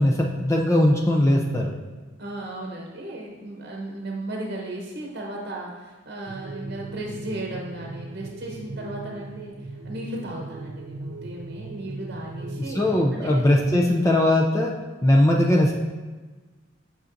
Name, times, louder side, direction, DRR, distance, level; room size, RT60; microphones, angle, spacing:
voice 1, 0.0-1.7 12.7-14.7 15.0-15.7, left 1 dB, 15° left, 0 dB, 0.4 m, -19 dB
voice 2, 2.2-13.5, right 1 dB, 50° right, -1 dB, 0.9 m, -35 dB
sound 1, 6.3-13.1, right 3 dB, 70° right, 0.5 m, -38 dB
8.3 x 6.3 x 2.6 m, 1.3 s
head